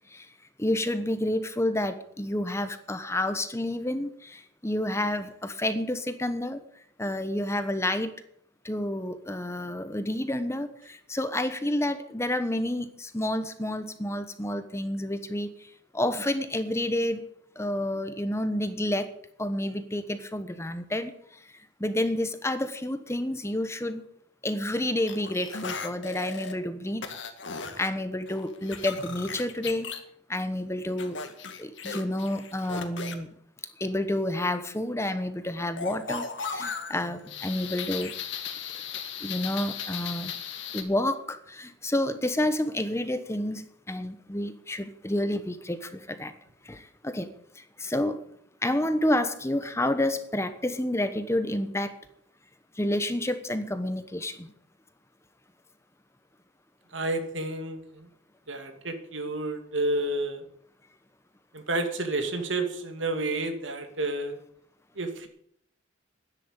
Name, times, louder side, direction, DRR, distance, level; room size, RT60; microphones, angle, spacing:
voice 1, 0.6-6.6 7.0-8.1 8.6-17.2 17.6-19.1 19.4-21.4 21.8-24.1 24.4-27.0 27.8-29.9 30.3-31.2 31.6-33.3 33.8-38.1 39.2-40.3 40.7-46.3 46.6-47.3 47.6-48.2 48.6-52.0 52.8-54.5, left 1 dB, 15° left, 10 dB, 1.1 m, -29 dB
sound 1, 25.1-26.5 27.0-27.9 28.3-30.0 31.0-33.1 35.8-40.8, left 5 dB, 75° left, 2.0 m, -36 dB
voice 2, 56.9-58.1 58.5-60.4 61.5-64.4 65.0-65.3, right 2 dB, 85° right, 6 dB, 2.5 m, -30 dB
12.0 x 10.0 x 8.9 m, 0.68 s
head